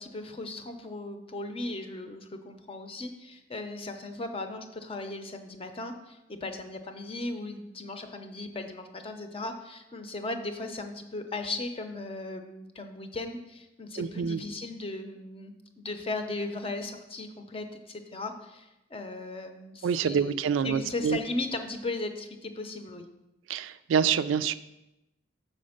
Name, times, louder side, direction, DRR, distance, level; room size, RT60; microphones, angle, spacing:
voice 1, 0.0-23.1, left 2 dB, 30° left, 6 dB, 0.6 m, -37 dB
voice 2, 14.0-14.4 19.8-21.2 23.5-24.5, right 7 dB, 85° right, 13 dB, 0.3 m, -26 dB
6.3 x 4.3 x 6.4 m, 0.93 s
head